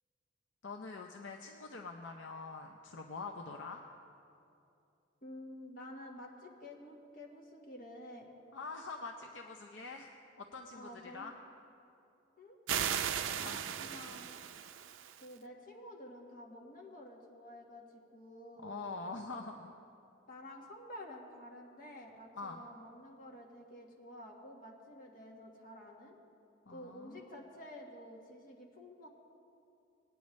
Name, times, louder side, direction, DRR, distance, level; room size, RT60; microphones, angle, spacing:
voice 1, 0.6-3.8 8.5-11.3 13.4-13.6 18.6-19.7 22.3-22.7 26.7-27.3, left 3 dB, 70° left, 2 dB, 0.6 m, -45 dB
voice 2, 5.2-8.3 10.7-11.3 12.4-12.6 13.3-14.4 15.2-18.9 20.3-26.1 26.7-29.1, left 1 dB, 45° left, -1 dB, 1.5 m, -50 dB
sound 1, 12.7-15.2, right 9 dB, 80° right, 0.5 m, -37 dB
19.5 x 9.2 x 3.1 m, 2.7 s
head